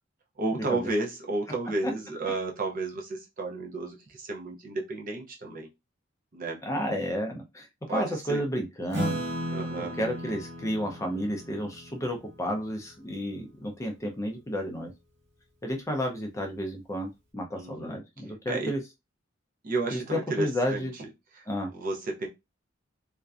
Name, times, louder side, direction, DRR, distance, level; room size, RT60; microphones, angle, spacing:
voice 1, 0.4-5.7 6.3-6.6 7.9-8.4 9.5-9.9 17.5-18.0 18.5-18.7 19.6-21.1 21.3-21.5 21.7-22.3, right 2 dB, 45° right, 1 dB, 0.6 m, -32 dB
voice 2, 6.6-9.2 10.0-14.9 15.6-18.8 19.9-20.9 21.5-21.7, equal, 15° left, 3 dB, 0.4 m, -31 dB
Acoustic guitar / Strum, 8.9-13.8, equal, 65° right, 0.9 m, -36 dB
2.5 x 2.1 x 2.3 m, 0.23 s
head